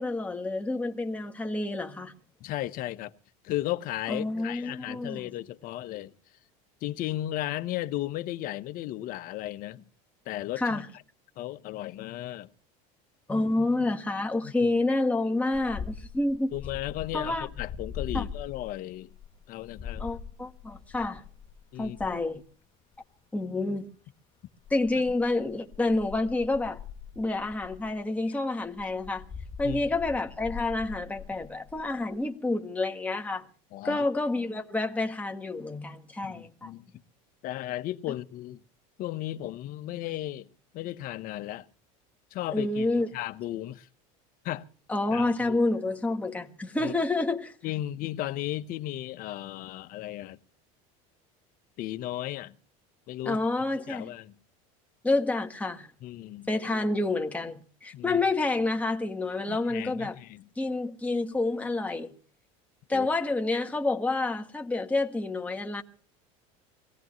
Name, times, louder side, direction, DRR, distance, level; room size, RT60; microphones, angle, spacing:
voice 1, 0.0-2.1 4.1-5.3 10.6-10.9 13.3-16.5 17.1-17.5 18.1-18.3 20.0-21.2 21.8-22.4 23.3-23.9 24.7-26.8 27.1-29.2 29.6-33.4 33.8-36.7 42.5-43.1 44.9-47.5 53.2-54.1 55.0-55.9 56.5-60.2 60.6-62.1 62.9-65.8, left 2 dB, 10° left, 1.6 m, -28 dB
voice 2, 2.4-3.1 3.4-6.1 6.8-9.8 10.2-10.8 11.4-12.5 14.4-14.7 16.5-19.1 19.5-20.1 21.7-22.0 29.6-29.9 33.7-34.0 36.2-36.9 37.4-38.6 39.0-40.5 40.7-41.7 42.3-42.9 43.1-43.9 44.4-44.7 45.1-45.6 46.8-46.9 47.6-50.4 51.8-52.6 53.1-54.3 56.0-56.5 57.9-58.2 59.5-60.5 62.9-63.1, left 14 dB, 50° left, 1.1 m, -35 dB
sound 1, 15.5-22.4 24.7-27.9 28.7-32.2, left 7 dB, 30° left, 1.2 m, -41 dB
23.0 x 17.0 x 3.1 m
supercardioid pair, 120°, 18 cm